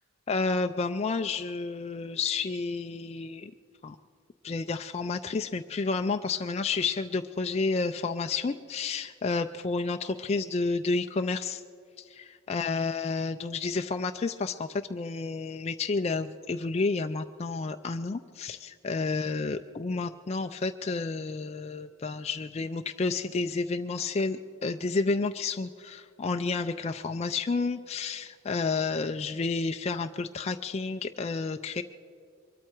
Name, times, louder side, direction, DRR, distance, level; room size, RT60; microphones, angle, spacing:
voice 1, 0.3-3.5 3.8-4.0 4.4-11.6 12.0-31.8, left 4 dB, 30° left, 6 dB, 0.3 m, -30 dB
23.0 x 13.0 x 4.5 m, 2.2 s
head